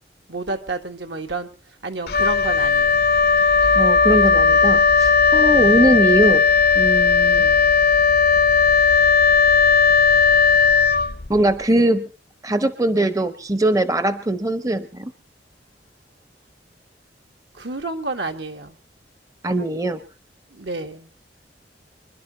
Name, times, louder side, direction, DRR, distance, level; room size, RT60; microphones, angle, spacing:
voice 1, 0.3-1.5 1.8-3.0 5.5-5.8 7.3-7.7 12.9-13.1 17.5-18.8 20.5-21.1, right 2 dB, 80° right, 5 dB, 1.6 m, -30 dB
Wind instrument woodwind instrument, 2.1-11.5, left 5 dB, 60° left, 0.7 m, -16 dB
voice 2, 3.8-6.4 6.8-7.4 11.3-12.1 12.4-15.1 19.4-20.0, right 1 dB, 20° right, 12 dB, 0.6 m, -20 dB
25.5 x 11.5 x 4.0 m, 0.36 s
head